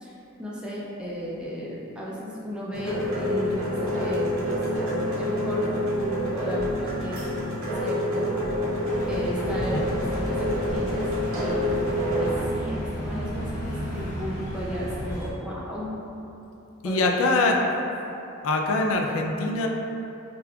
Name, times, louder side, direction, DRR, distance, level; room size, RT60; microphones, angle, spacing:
voice 1, 0.0-5.7 6.0-8.4 9.1-11.1 11.4-16.0 16.8-17.5, equal, 5° right, -6 dB, 0.4 m, -35 dB
sound 1, 2.7-12.5, equal, 70° right, 0.7 m, -27 dB
sound 2, 8.9-15.3, equal, 35° left, 0.7 m, -34 dB
voice 2, 16.8-17.5 18.4-19.7, left 3 dB, 70° left, 1 dB, 0.3 m, -23 dB
5.0 x 2.2 x 2.3 m, 2.9 s
head